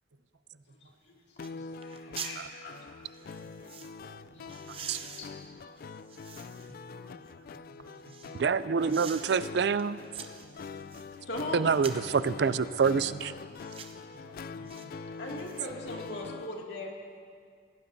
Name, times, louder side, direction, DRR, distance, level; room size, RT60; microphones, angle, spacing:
sound 1, 0.9-1.0 1.4-1.5 1.8-2.4 3.1-3.9 4.5-6.8 7.3-8.4 8.9-9.4 9.8-11.1 11.7-12.1 12.7-13.0 13.6-14.0 14.7-14.9 15.2-16.0 16.4-16.5, right 6 dB, 30° right, 0.8 m, -45 dB
sound 2, 1.4-16.6, left 4 dB, 50° left, 0.3 m, -44 dB
voice 1, 1.6-3.0 4.3-4.5 5.2-5.3 6.0-6.1 6.6-6.7 11.2-11.7 15.2-17.0, left 1 dB, 70° left, -1 dB, 2.3 m, -40 dB
voice 2, 3.2-3.7 4.0-4.8 5.7-5.8 6.7-8.4 14.1-14.9, right 2 dB, 90° right, 8 dB, 0.9 m, -58 dB
voice 3, 8.4-10.0 11.5-13.3, right 5 dB, 65° right, 15 dB, 0.4 m, -26 dB
21.5 x 17.5 x 2.7 m, 2.1 s
head